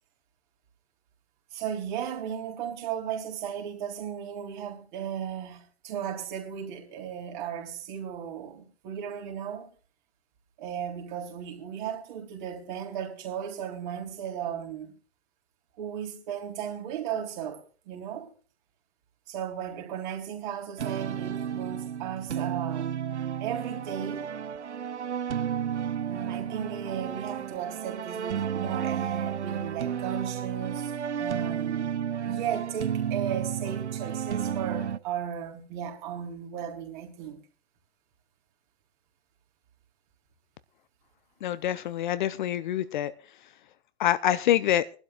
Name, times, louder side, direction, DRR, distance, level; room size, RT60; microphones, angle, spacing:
voice 1, 1.5-9.7 10.6-15.0 15.8-18.3 19.3-22.9 23.4-24.3 26.1-30.9 31.2-32.0 32.2-37.4, right 9 dB, 45° right, 3.7 m, -35 dB
sound 1, 20.8-35.0, right 8 dB, 85° right, 0.7 m, -32 dB
voice 2, 41.4-43.1 44.0-44.9, left 12 dB, 45° left, 0.6 m, -26 dB
23.0 x 12.0 x 2.4 m
figure-of-eight pair, 120°, 34 cm